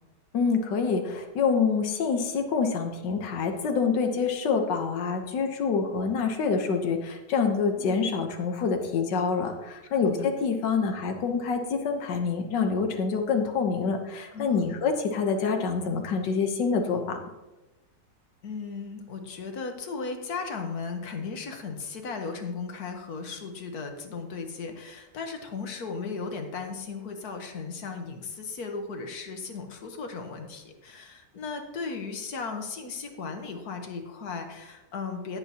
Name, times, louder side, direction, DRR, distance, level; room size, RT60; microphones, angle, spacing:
voice 1, 0.3-17.2, left 5 dB, 80° left, 4 dB, 1.7 m, -26 dB
voice 2, 9.8-10.3 14.3-14.7 18.4-35.4, left 4 dB, 65° left, 5 dB, 1.6 m, -36 dB
16.5 x 8.4 x 2.9 m, 1.1 s
omnidirectional pair, 1.9 m